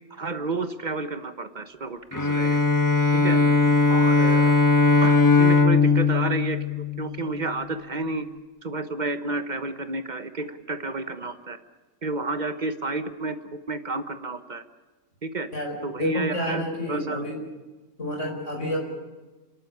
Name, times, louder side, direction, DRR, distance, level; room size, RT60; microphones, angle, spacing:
voice 1, 0.1-2.6 3.2-3.4 3.9-4.5 5.0-8.2 8.6-11.6 12.0-14.6 15.2-15.5 15.8-16.6 16.9-17.2, right 3 dB, 35° right, 10 dB, 1.2 m, -30 dB
Bowed string instrument, 2.1-7.5, left 4 dB, 15° left, 1.2 m, -19 dB
voice 2, 15.5-17.4 18.0-18.8, equal, 65° left, 1 dB, 5.5 m, -30 dB
29.5 x 12.0 x 9.7 m, 1.2 s
omnidirectional pair, 1.4 m